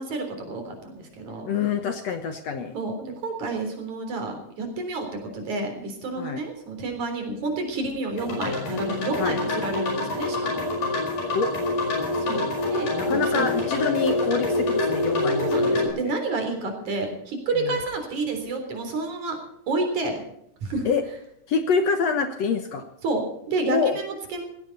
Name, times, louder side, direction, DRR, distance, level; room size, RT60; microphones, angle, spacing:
voice 1, 0.0-1.5 2.7-10.7 12.2-13.7 15.4-19.4 19.7-20.2 20.6-20.9 23.0-24.5, right 3 dB, 60° right, 5 dB, 5.0 m, -30 dB
voice 2, 1.5-2.7 6.1-6.4 9.2-9.4 11.3-11.5 12.9-16.1 17.6-17.7 20.9-21.0 21.5-22.9 23.7-24.0, left 5 dB, 60° left, 7 dB, 2.0 m, -26 dB
sound 1, 8.2-15.9, left 2 dB, 80° left, 6.5 m, -26 dB
18.0 x 16.0 x 4.1 m, 0.74 s
omnidirectional pair, 3.8 m